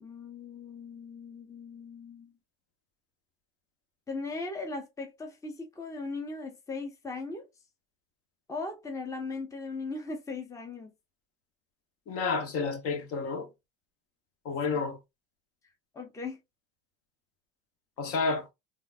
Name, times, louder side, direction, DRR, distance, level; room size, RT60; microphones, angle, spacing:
voice 1, 0.0-2.3 4.1-7.5 8.5-10.9 15.9-16.4, left 3 dB, 10° left, 0.8 m, -38 dB
voice 2, 12.1-13.5 14.4-15.0 18.0-18.4, left 4 dB, 50° left, 1.2 m, -30 dB
3.6 x 2.6 x 2.5 m
supercardioid pair, 105°, 30 cm